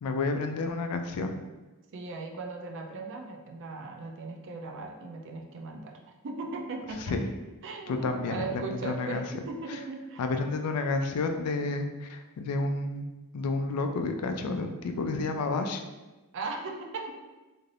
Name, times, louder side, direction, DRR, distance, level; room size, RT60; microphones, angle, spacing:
voice 1, 0.0-1.3 7.1-7.2 7.9-9.2 10.2-13.1 13.3-15.8, left 3 dB, 90° left, 6 dB, 0.4 m, -30 dB
voice 2, 1.9-7.3 7.6-10.3 16.3-17.1, right 3 dB, 60° right, 3 dB, 0.4 m, -38 dB
2.6 x 2.4 x 3.2 m, 1.1 s
head